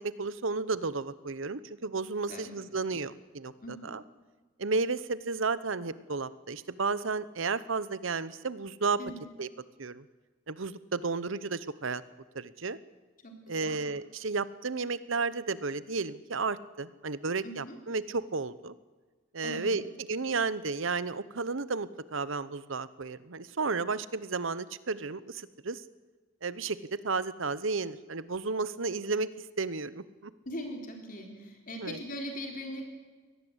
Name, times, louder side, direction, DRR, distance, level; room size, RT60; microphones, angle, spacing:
voice 1, 0.0-4.0 4.6-9.0 9.4-9.5 9.8-10.0 10.5-12.0 12.3-12.8 13.5-18.7 19.3-25.8 26.4-29.3 29.6-30.3 31.8-32.0, right 4 dB, 70° right, 16 dB, 1.0 m, -33 dB
voice 2, 3.6-3.9 9.0-9.2 13.2-13.8 17.4-17.8 19.4-19.8 30.5-32.8, equal, 40° left, 2 dB, 4.0 m, -40 dB
23.5 x 18.5 x 8.1 m, 1.3 s
head